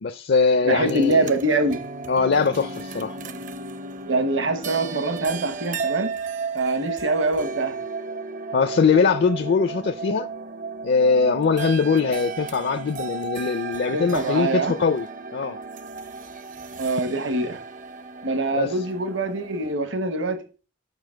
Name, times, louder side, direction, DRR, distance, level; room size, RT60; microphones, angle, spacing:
voice 1, 0.0-1.3 2.1-3.2 8.5-10.3 10.8-15.1 15.3-15.6 18.5-18.8, left 5 dB, 55° left, 0.5 m, -21 dB
voice 2, 0.6-1.8 4.0-6.1 6.5-7.8 13.9-14.8 16.8-17.6 18.2-20.4, right 2 dB, 65° right, 1.2 m, -24 dB
sound 1, 0.9-19.7, right 4 dB, 40° right, 0.6 m, -34 dB
6.8 x 6.2 x 6.4 m
head